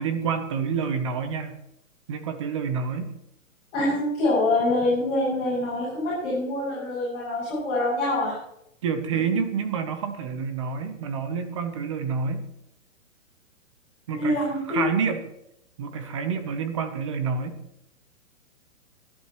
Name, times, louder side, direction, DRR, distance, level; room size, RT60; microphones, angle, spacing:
voice 1, 0.0-1.6 2.1-3.1 8.8-12.5 14.1-15.3 15.8-17.6, right 6 dB, 25° right, 8 dB, 1.0 m, -28 dB
voice 2, 3.7-8.3 9.1-9.2 14.1-14.9, left 2 dB, 20° left, -10 dB, 7.4 m, -25 dB
27.0 x 11.0 x 3.1 m, 0.79 s
hypercardioid pair, 175°, 40 cm